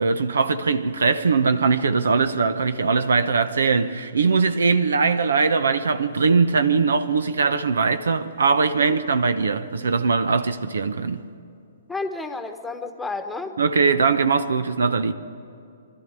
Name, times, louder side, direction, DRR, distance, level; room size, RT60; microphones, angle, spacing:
voice 1, 0.0-11.2 13.6-15.1, right 4 dB, 80° right, 0.9 m, -21 dB
voice 2, 11.9-13.6, left 3 dB, 5° left, 1.2 m, -31 dB
22.0 x 13.0 x 9.6 m
hypercardioid pair, 135°, 0 cm